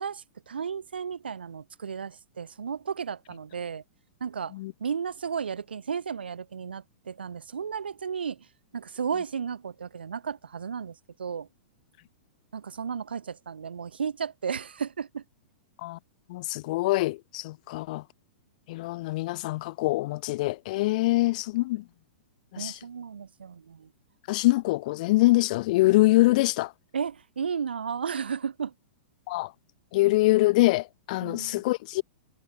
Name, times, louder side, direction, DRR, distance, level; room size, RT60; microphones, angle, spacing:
voice 1, 0.0-3.8 4.2-4.5 4.8-8.5 8.7-11.5 12.5-15.2 22.6-23.9 26.9-28.7 31.2-31.6, right 6 dB, 75° right, 0.5 m, -34 dB
voice 2, 16.3-18.0 18.7-21.8 22.5-22.8 24.3-26.7 29.3-29.5 29.9-32.0, left 19 dB, 50° left, 0.5 m, -24 dB
figure-of-eight pair, 105°, 5 cm